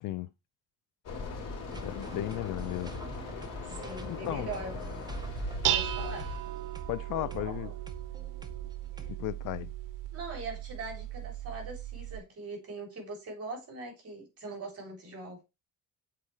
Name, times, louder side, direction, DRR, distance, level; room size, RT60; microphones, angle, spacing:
sound 1, 1.0-6.4, left 3 dB, 55° left, 3.3 m, -39 dB
sound 2, 1.7-9.1, right 2 dB, 15° right, 0.7 m, -47 dB
voice 1, 1.8-3.0 4.0-4.5 6.9-7.7 9.1-9.7, left 16 dB, 75° left, 0.5 m, -35 dB
voice 2, 3.7-4.7 5.7-6.3 7.1-7.7 10.1-15.4, right 3 dB, 45° right, 3.5 m, -41 dB
Dishes pots and pans, 5.1-12.2, right 12 dB, 80° right, 0.7 m, -36 dB
7.6 x 4.1 x 3.2 m
cardioid pair, 130°, 32 cm